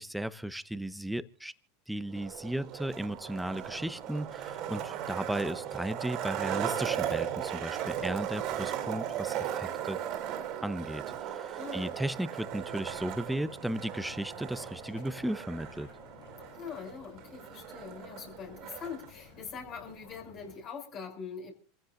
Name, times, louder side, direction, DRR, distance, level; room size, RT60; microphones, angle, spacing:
voice 1, 0.0-1.5 1.9-10.0 10.6-15.9, right 1 dB, 5° right, 0.9 m, -35 dB
Skateboard, 2.1-19.1, right 10 dB, 50° right, 2.9 m, -37 dB
voice 2, 11.6-12.0 16.5-21.5, left 6 dB, 45° left, 6.2 m, -43 dB
sound 1, 12.4-20.6, left 5 dB, 80° left, 6.8 m, -54 dB
27.5 x 15.5 x 2.6 m
hypercardioid pair, 95°, 0 cm